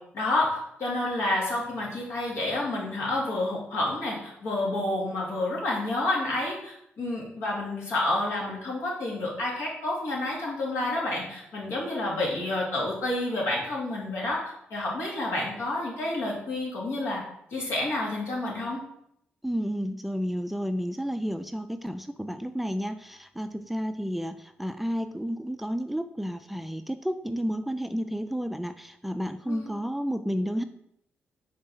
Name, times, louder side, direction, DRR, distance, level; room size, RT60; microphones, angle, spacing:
voice 1, 0.1-17.2 17.5-18.8 29.5-29.7, left 2 dB, 75° left, -3 dB, 2.3 m, -29 dB
voice 2, 19.4-30.6, equal, 5° right, 9 dB, 0.4 m, -31 dB
5.4 x 3.9 x 5.3 m, 0.75 s
supercardioid pair, 60°, 4 cm